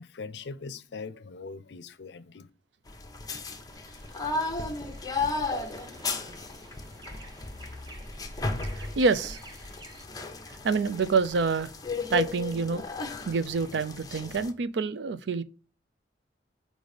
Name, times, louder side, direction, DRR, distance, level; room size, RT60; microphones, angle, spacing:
voice 1, 0.0-2.5, left 4 dB, 70° left, 0.5 m, -41 dB
sound 1, 2.9-14.5, left 3 dB, 20° left, 0.8 m, -35 dB
sound 2, 3.7-10.0, right 1 dB, 25° right, 0.8 m, -49 dB
voice 2, 8.7-9.4 10.6-11.7 12.1-12.8 13.3-15.4, right 4 dB, 70° right, 0.4 m, -27 dB
4.9 x 3.9 x 4.9 m
head